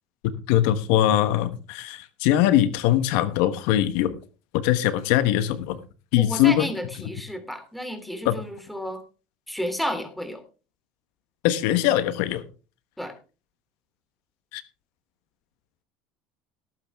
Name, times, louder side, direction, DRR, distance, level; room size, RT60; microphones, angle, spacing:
voice 1, 0.5-4.2 4.5-5.8 6.1-6.7 8.2-8.4 11.4-12.4 14.5-14.6, left 12 dB, 75° left, 12 dB, 1.2 m, -21 dB
voice 2, 6.2-9.0 9.5-10.4 13.0-13.1, equal, ahead, 7 dB, 3.0 m, -32 dB
18.0 x 9.0 x 3.5 m, 0.35 s
supercardioid pair, 110°, 4 cm